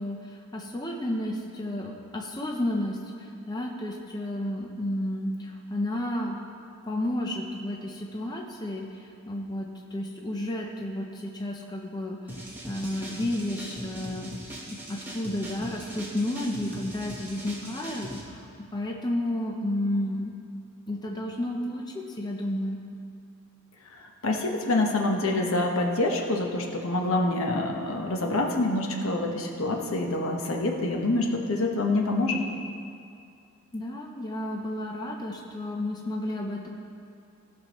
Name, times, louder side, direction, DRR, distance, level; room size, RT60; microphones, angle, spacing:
voice 1, 0.0-6.4 6.9-14.3 14.9-20.3 20.9-22.8 33.7-36.7, left 1 dB, 20° left, 0 dB, 0.7 m, -32 dB
sound 1, 12.3-18.2, right 1 dB, 10° right, 1.1 m, -40 dB
voice 2, 24.2-32.4, left 2 dB, 75° left, 1 dB, 1.1 m, -26 dB
17.5 x 6.1 x 3.1 m, 2.5 s
head